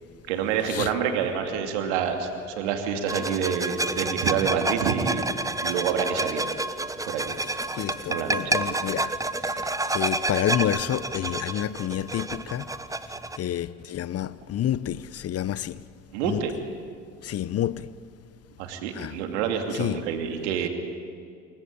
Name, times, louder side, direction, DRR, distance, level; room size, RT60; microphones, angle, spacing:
voice 1, 0.3-2.3 2.6-5.2 5.6-6.5 7.1-7.3 8.1-8.6 16.1-16.5 18.6-20.7, right 7 dB, 85° right, 2.7 m, -27 dB
sound 1, 3.1-13.4, right 2 dB, 10° right, 1.1 m, -29 dB
voice 2, 7.7-12.7 13.0-15.8 16.2-16.4 17.2-17.9 18.9-19.2 19.7-20.0, left 11 dB, 45° left, 0.8 m, -29 dB
27.5 x 15.0 x 8.7 m
hypercardioid pair, 70°, 33 cm